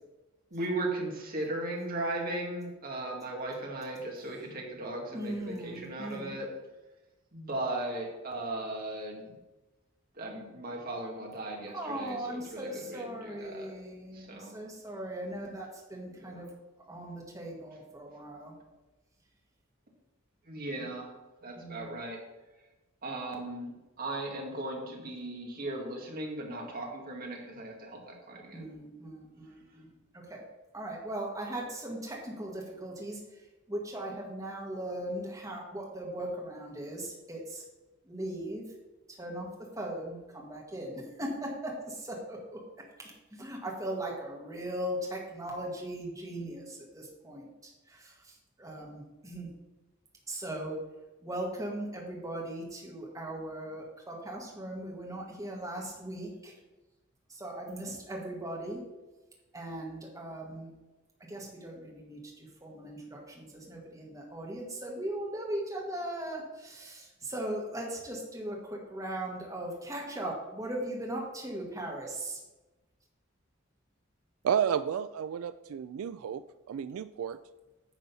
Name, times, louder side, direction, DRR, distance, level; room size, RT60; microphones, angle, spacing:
voice 1, 0.5-6.5 7.3-9.3 10.2-13.7 14.1-14.5 16.2-16.3 20.5-21.1 21.4-22.2 23.0-28.6, right 2 dB, 45° right, 0 dB, 2.1 m, -37 dB
voice 2, 5.1-6.4 11.7-16.5 16.9-18.5 20.7-20.9 21.6-22.0 28.5-29.9 30.1-30.4 30.7-37.7 38.0-38.8 39.1-42.6 43.0-49.5 50.3-50.8 51.2-56.6 57.3-58.8 59.5-60.7 61.2-72.4, right 1 dB, 15° right, -2 dB, 2.0 m, -39 dB
voice 3, 74.4-76.4 76.7-77.4, right 8 dB, 85° right, 13 dB, 0.3 m, -31 dB
10.0 x 4.0 x 7.0 m, 1.1 s
head